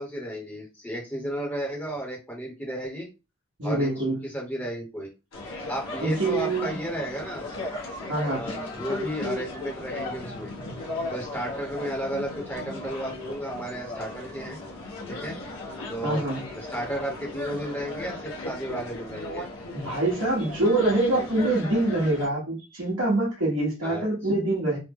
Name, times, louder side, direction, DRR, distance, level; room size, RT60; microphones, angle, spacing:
voice 1, 0.0-3.1 3.6-5.1 5.7-7.4 8.2-10.5 11.1-14.6 15.1-15.3 15.9-16.3 16.5-19.5 23.8-24.1, right 1 dB, 10° left, -1 dB, 0.8 m, -33 dB
voice 2, 3.6-4.2 6.0-6.7 8.1-8.4 16.0-16.4 19.7-24.8, right 2 dB, 75° right, -6 dB, 1.1 m, -25 dB
sound 1, 5.3-22.3, left 2 dB, 70° left, 1.0 m, -36 dB
3.2 x 2.1 x 3.5 m, 0.28 s
head